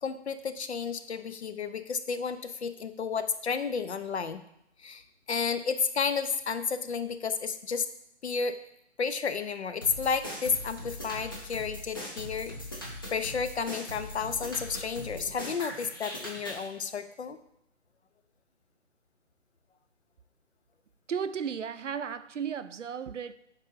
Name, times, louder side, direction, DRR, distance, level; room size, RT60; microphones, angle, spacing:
voice 1, 0.0-4.4 4.8-5.0 5.3-7.9 8.2-8.6 9.0-12.9 13.1-17.4, left 5 dB, 65° left, 0.6 m, -32 dB
sound 1, 9.8-16.7, left 1 dB, 20° left, 0.5 m, -40 dB
voice 2, 21.1-23.3, right 7 dB, 75° right, 0.5 m, -34 dB
9.5 x 4.0 x 2.7 m
figure-of-eight pair, 145°, 36 cm